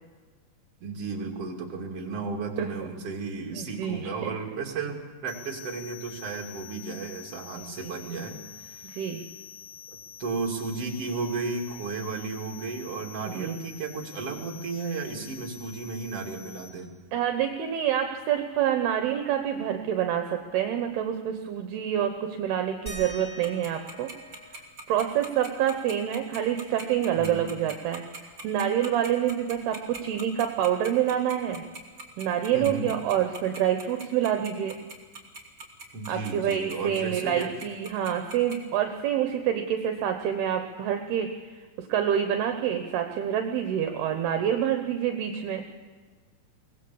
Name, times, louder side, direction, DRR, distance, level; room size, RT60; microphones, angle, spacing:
voice 1, 0.8-9.0 10.2-16.9 27.2-27.5 32.5-32.9 35.9-37.5, right 4 dB, 40° right, 0 dB, 3.0 m, -34 dB
voice 2, 3.5-4.3 8.9-9.2 13.2-13.5 17.1-24.1 24.9-28.0 28.4-31.6 32.2-34.8 36.1-41.3 41.8-45.6, right 10 dB, 75° right, 5 dB, 2.9 m, -27 dB
sound 1, 5.3-16.7, left 8 dB, 65° left, 2.2 m, -46 dB
sound 2, 22.9-28.0 28.3-28.4 28.8-30.5 31.8-31.9 32.6-32.7, right 1 dB, 10° left, 3.6 m, -48 dB
Tick-tock, 23.4-38.5, right 3 dB, 25° right, 2.6 m, -40 dB
23.0 x 18.5 x 7.1 m, 1.5 s
omnidirectional pair, 4.8 m